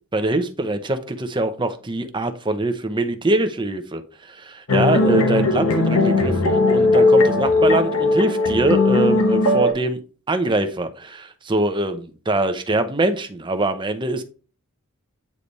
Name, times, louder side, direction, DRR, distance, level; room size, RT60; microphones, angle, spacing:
voice 1, 0.1-4.0 4.3-10.0 10.3-14.2, right 2 dB, 20° right, 8 dB, 0.7 m, -23 dB
sound 1, 4.7-9.7, left 2 dB, 85° left, 1.4 m, -17 dB
8.5 x 3.3 x 4.0 m, 0.36 s
head